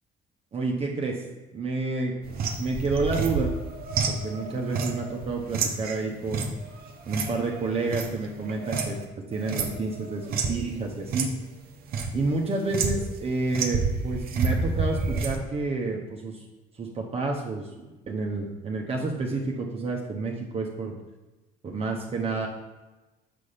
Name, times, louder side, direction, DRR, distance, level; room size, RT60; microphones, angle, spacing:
voice 1, 0.5-1.2 1.5-3.5 4.1-6.5 7.1-9.0 9.3-11.3 12.1-16.4 16.8-20.9 21.6-22.5, right 3 dB, 35° right, 0 dB, 0.9 m, -29 dB
sound 1, 2.2-9.0 9.3-10.6 11.1-11.3 11.6-12.2 12.7-13.2 13.5-15.4, right 4 dB, 65° right, 0.9 m, -29 dB
6.7 x 4.1 x 5.0 m, 1.1 s
cardioid pair, 110°, 17 cm